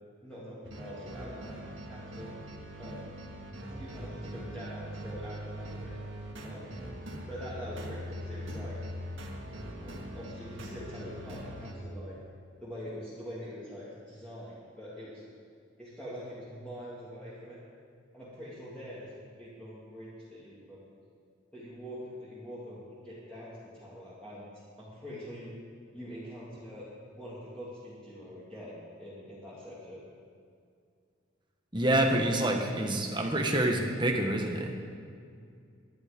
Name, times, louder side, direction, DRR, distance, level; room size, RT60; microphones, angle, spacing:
voice 1, 0.2-2.3 2.8-3.1 3.6-6.0 6.4-6.8 7.3-8.8 9.8-12.2 12.6-15.2 15.8-17.6 18.1-19.1 19.4-20.9 21.5-24.5 24.8-25.5 25.9-30.0, equal, 5° left, -11 dB, 2.8 m, -44 dB
sound 1, 0.6-11.7, equal, 70° right, 1.9 m, -42 dB
voice 2, 31.7-34.7, right 1 dB, 20° right, 2 dB, 1.5 m, -27 dB
20.5 x 11.5 x 5.3 m, 2.3 s
head